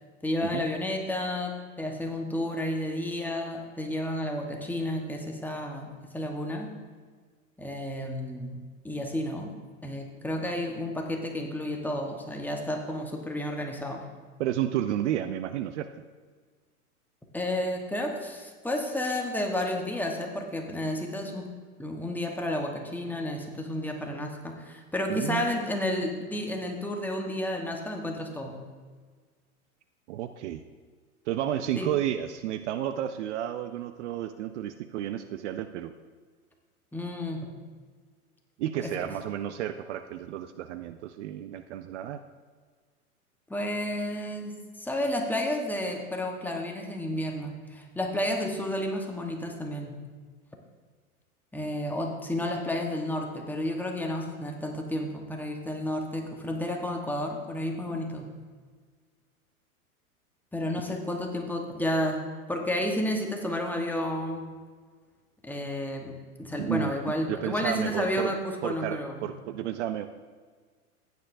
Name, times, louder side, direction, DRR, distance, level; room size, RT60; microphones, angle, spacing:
voice 1, 0.2-6.7 7.6-9.5 9.8-14.1 17.3-28.6 31.8-31.9 36.9-37.5 38.8-38.9 43.5-50.0 51.5-58.3 60.5-64.5 65.4-69.3, left 1 dB, 5° left, 2 dB, 1.1 m, -31 dB
voice 2, 14.4-15.9 25.1-25.7 30.1-30.6 31.3-35.9 38.6-42.2 66.6-66.9 67.3-68.3 68.6-70.1, right 11 dB, 50° right, 10 dB, 0.5 m, -32 dB
15.0 x 9.3 x 2.6 m, 1.5 s
hypercardioid pair, 105°, 44 cm